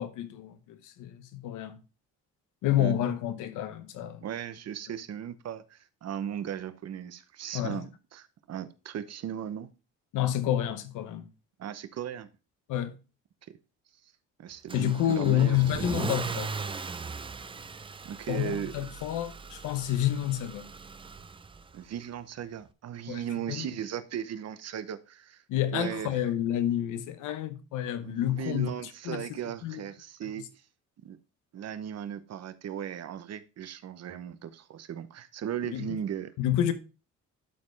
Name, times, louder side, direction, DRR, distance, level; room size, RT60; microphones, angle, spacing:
voice 1, 0.0-1.8 2.6-4.2 7.5-7.8 10.1-11.3 12.7-13.0 14.7-16.5 18.3-20.7 23.1-23.2 23.5-23.7 25.5-28.7 29.0-29.2 29.6-29.8 30.3-30.4 35.7-36.0 36.4-36.7, left 11 dB, 90° left, 0.9 m, -29 dB
voice 2, 4.2-9.7 11.6-12.3 13.5-13.6 14.4-15.6 15.9-16.0 18.0-18.7 21.7-25.4 25.7-26.3 28.0-30.6 31.0-31.2 31.5-36.3, right 9 dB, 55° right, 0.8 m, -37 dB
Car / Engine starting / Accelerating revving vroom, 14.7-21.8, right 4 dB, 15° right, 0.4 m, -39 dB
11.5 x 4.2 x 3.2 m
cardioid pair, 90°, 30 cm